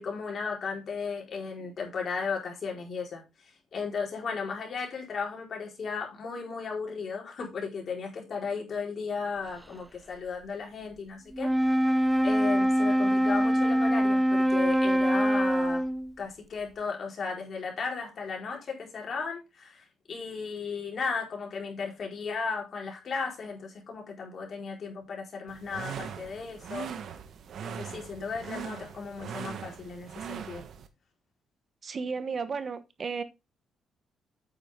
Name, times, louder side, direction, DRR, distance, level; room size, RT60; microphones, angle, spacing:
voice 1, 0.0-3.2 3.7-11.5 12.2-15.8 16.2-26.9 27.6-30.6, left 5 dB, 50° left, 4.5 m, -35 dB
Wind instrument woodwind instrument, 11.3-16.1, equal, 10° right, 0.6 m, -24 dB
sound 1, 25.5-30.9, right 8 dB, 65° right, 1.3 m, -40 dB
voice 2, 31.8-33.2, right 5 dB, 40° right, 1.1 m, -33 dB
8.8 x 7.6 x 3.7 m
cardioid pair, 90°, 0 cm